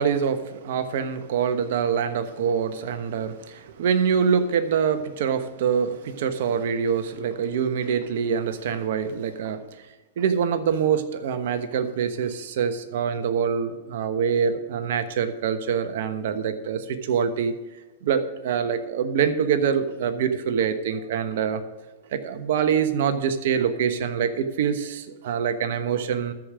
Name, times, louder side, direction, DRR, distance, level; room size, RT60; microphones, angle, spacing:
voice 1, 0.0-9.6 10.2-17.5 18.0-21.6 22.1-26.3, right 7 dB, 65° right, 10 dB, 1.1 m, -25 dB
13.5 x 5.1 x 6.2 m, 1.2 s
hypercardioid pair, 115°, 0 cm